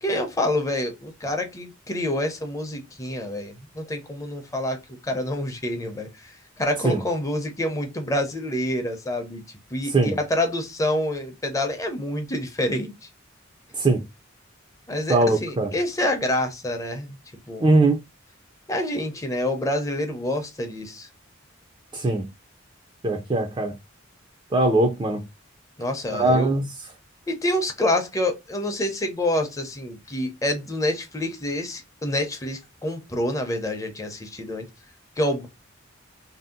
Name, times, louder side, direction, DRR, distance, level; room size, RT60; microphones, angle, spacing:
voice 1, 0.0-9.4 9.7-12.9 14.9-17.2 17.5-17.7 18.7-21.1 25.8-26.5 27.3-34.7 35.2-35.5, left 1 dB, 15° left, 0.6 m, -27 dB
voice 2, 15.1-15.7 17.6-18.0 21.9-22.2 23.0-23.7 24.5-25.2 26.1-26.6, right 2 dB, 25° right, 0.4 m, -20 dB
2.7 x 2.0 x 3.6 m
head